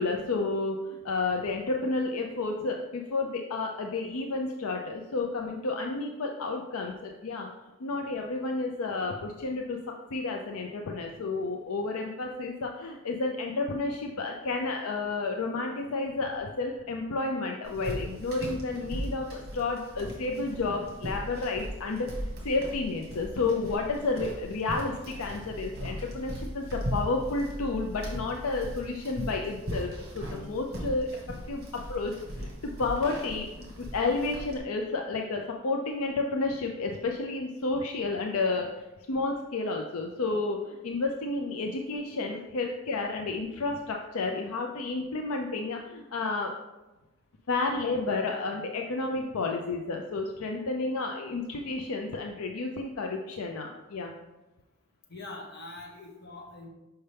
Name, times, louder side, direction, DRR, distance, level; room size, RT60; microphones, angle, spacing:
voice 1, 0.0-7.5 7.8-9.8 10.1-22.1 22.4-29.9 30.1-31.1 31.5-31.6 31.9-38.7 39.1-46.5 47.5-54.1, left 3 dB, 70° left, 2 dB, 0.5 m, -31 dB
sound 1, 17.6-34.6, equal, 45° right, 1.6 m, -38 dB
voice 2, 55.1-56.7, left 2 dB, 45° left, -1 dB, 1.2 m, -43 dB
5.7 x 5.5 x 3.4 m, 1.1 s
head